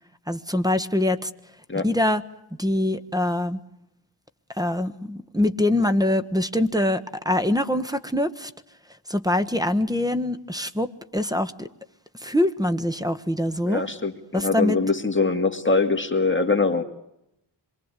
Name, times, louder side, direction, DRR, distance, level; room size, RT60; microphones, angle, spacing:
voice 1, 0.3-1.3 1.8-2.2 2.6-3.6 4.6-8.5 9.1-11.7 12.2-13.8 14.3-14.8, left 1 dB, 10° right, 10 dB, 1.4 m, -24 dB
voice 2, 13.6-16.8, left 3 dB, 25° left, 5 dB, 2.4 m, -23 dB
26.5 x 23.5 x 8.3 m, 0.82 s
wide cardioid pair, 80°, 43 cm